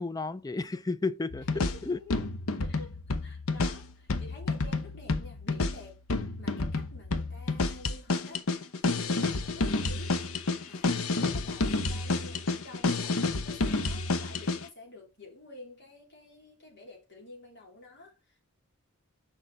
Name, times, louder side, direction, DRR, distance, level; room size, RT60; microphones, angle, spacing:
voice 1, 0.0-2.0 11.2-11.4, left 3 dB, 15° left, 0.4 m, -33 dB
sound 1, 1.3-14.6, left 3 dB, 75° left, 0.9 m, -30 dB
voice 2, 1.5-2.2 2.6-6.0 6.4-8.5 8.8-10.2 10.7-13.2 13.4-18.4, left 2 dB, 50° left, 3.8 m, -50 dB
6.8 x 5.6 x 4.3 m
head